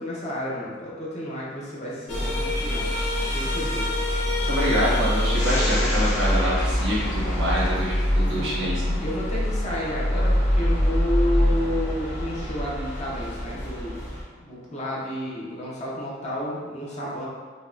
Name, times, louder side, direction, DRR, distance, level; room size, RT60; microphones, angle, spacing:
voice 1, 0.0-2.9 3.3-3.9 4.9-5.1 8.2-8.6 9.0-14.1 14.4-17.2, left 1 dB, 35° left, -6 dB, 0.8 m, -31 dB
sound 1, 2.1-14.2, left 1 dB, 70° left, 1.0 m, -24 dB
voice 2, 4.4-9.1, equal, 75° right, -7 dB, 1.4 m, -26 dB
5.1 x 2.3 x 2.6 m, 1.5 s
head